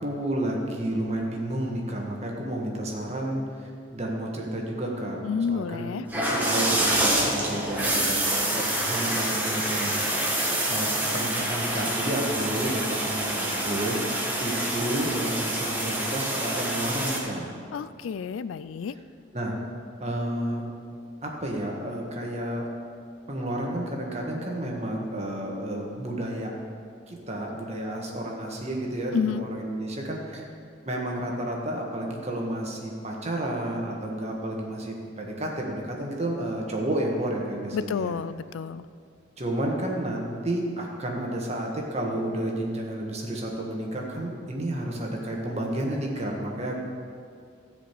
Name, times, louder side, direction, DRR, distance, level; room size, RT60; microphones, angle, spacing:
voice 1, 0.0-5.2 5.5-14.0 14.4-17.5 19.3-19.5 20.0-20.6 21.2-22.6 23.3-26.5 27.1-30.4 30.8-38.1 39.4-46.8, right 1 dB, 30° right, -1 dB, 1.6 m, -31 dB
voice 2, 5.2-6.1 17.7-18.9 29.1-29.4 37.7-38.8, left 6 dB, 80° left, 15 dB, 0.3 m, -30 dB
sound 1, 6.1-17.2, right 1 dB, 10° right, 1.4 m, -27 dB
14.0 x 5.1 x 8.3 m, 2.3 s
head